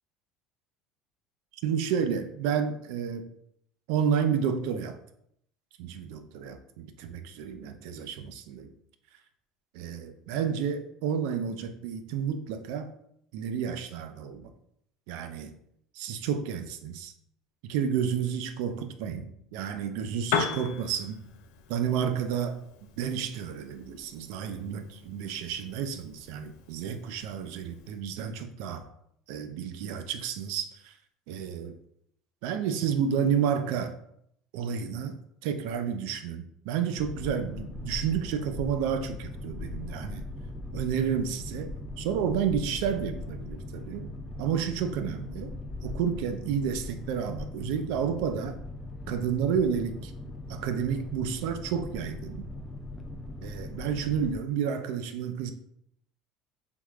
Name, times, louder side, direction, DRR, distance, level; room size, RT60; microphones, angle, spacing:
voice 1, 1.6-3.3 3.9-5.0 5.8-8.7 9.7-12.9 13.3-14.5 15.1-15.5 15.9-17.1 17.6-21.2 21.7-22.6 23.0-28.8 29.3-30.9 31.3-31.7 32.4-33.9 34.5-35.2 35.4-40.3 40.7-45.6 45.8-48.6 49.1-50.1 50.5-52.5 53.4-55.5, right 7 dB, 75° right, 8 dB, 0.4 m, -31 dB
Piano, 20.2-28.0, left 6 dB, 80° left, 0.4 m, -38 dB
Boat Water vehicle, 37.0-54.4, left 2 dB, 10° left, 0.4 m, -39 dB
3.5 x 3.0 x 2.3 m, 0.73 s
cardioid pair, 135°, 0 cm